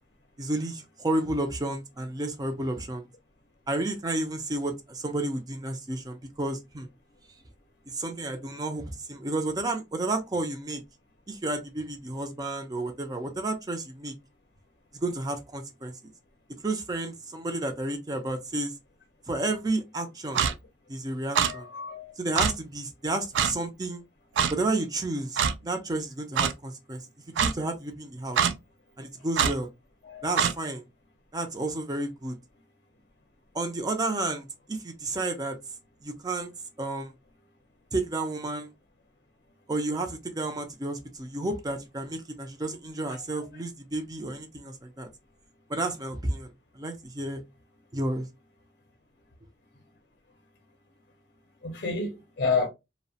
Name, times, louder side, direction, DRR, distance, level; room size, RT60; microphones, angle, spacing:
voice 1, 0.4-3.1 3.7-6.9 7.9-10.8 11.3-14.1 14.9-15.9 16.6-18.7 19.3-20.4 20.9-21.7 22.2-24.0 24.5-27.0 27.4-28.4 29.0-29.7 30.2-30.8 31.3-32.4 33.5-35.6 36.0-36.5 36.8-37.1 37.9-38.7 39.7-45.1 45.7-47.4 47.9-48.3, right 2 dB, 20° right, 0.4 m, -31 dB
Clock, 20.4-20.5 21.4-21.5 22.4-22.5 23.4-23.5 24.4-24.5 25.4-25.5 26.4-26.5 27.4-27.5 28.4-28.5 29.4-29.5 30.4-30.5, right 7 dB, 85° right, 0.3 m, -23 dB
voice 2, 21.4-22.1 30.0-30.3 51.6-52.7, left 4 dB, 50° left, 0.6 m, -29 dB
2.8 x 2.1 x 2.7 m
head